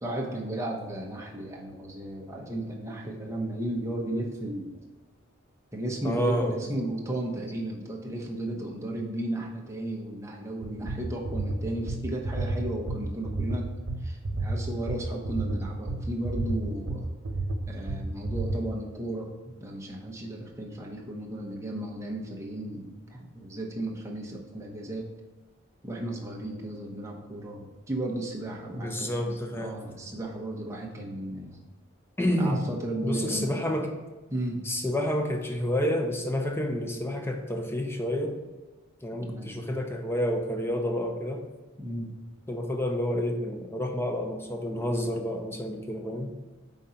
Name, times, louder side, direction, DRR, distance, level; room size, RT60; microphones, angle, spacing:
voice 1, 0.0-4.8 5.7-13.7 14.0-17.1 17.7-25.0 25.8-31.6 32.3-33.6 34.3-34.6 39.2-39.6 41.8-42.1, right 1 dB, 15° right, -1 dB, 0.9 m, -34 dB
voice 2, 6.0-6.6 28.7-29.8 30.0-30.1 32.2-32.7 33.0-33.9 34.6-38.4 39.0-41.5 42.5-46.3, equal, 10° left, 3 dB, 0.6 m, -29 dB
sound 1, 10.6-18.6, right 2 dB, 90° right, 0.8 m, -31 dB
5.3 x 3.8 x 5.7 m, 1.2 s
head